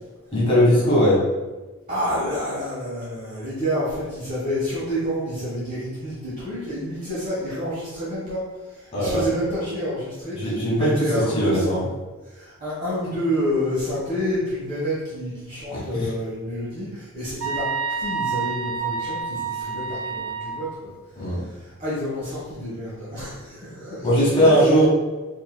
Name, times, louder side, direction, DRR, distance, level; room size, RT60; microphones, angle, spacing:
voice 1, 0.3-1.2 8.9-9.2 10.3-11.8 15.7-16.1 21.2-21.4 24.0-24.9, equal, 25° left, -7 dB, 1.4 m, -19 dB
voice 2, 1.9-11.9 12.2-20.9 21.2-24.9, equal, 35° right, -10 dB, 1.4 m, -29 dB
sound 1, 17.4-20.7, right 5 dB, 65° right, 0.4 m, -28 dB
5.3 x 2.9 x 2.2 m, 1.2 s
head